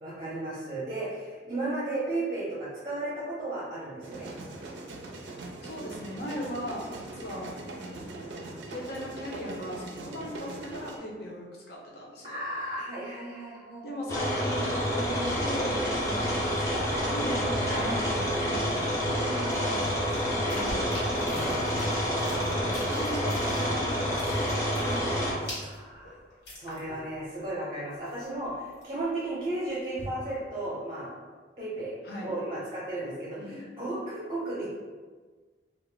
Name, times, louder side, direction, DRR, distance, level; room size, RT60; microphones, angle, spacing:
voice 1, 0.0-4.3 12.2-14.3 16.1-16.3 17.6-17.9 21.2-21.6 23.5-23.8 25.4-26.1 26.6-31.1 31.6-31.9 32.2-34.7, right 2 dB, 30° right, -8 dB, 0.6 m, -35 dB
sound 1, 4.0-11.0, right 2 dB, 80° right, 0.4 m, -41 dB
voice 2, 5.4-8.0 8.7-12.4 13.8-18.8 19.1-21.7 22.2-25.4 30.0-30.1 32.0-32.4 33.4-33.7, equal, 60° left, -3 dB, 0.6 m, -39 dB
sound 2, 14.1-25.3, equal, 15° left, 0.6 m, -28 dB
sound 3, 19.5-23.8 24.1-27.2 27.4-27.5 27.9-29.1 29.5-30.3, left 1 dB, 85° left, 1.2 m, -44 dB
2.3 x 2.0 x 3.8 m, 1.4 s
head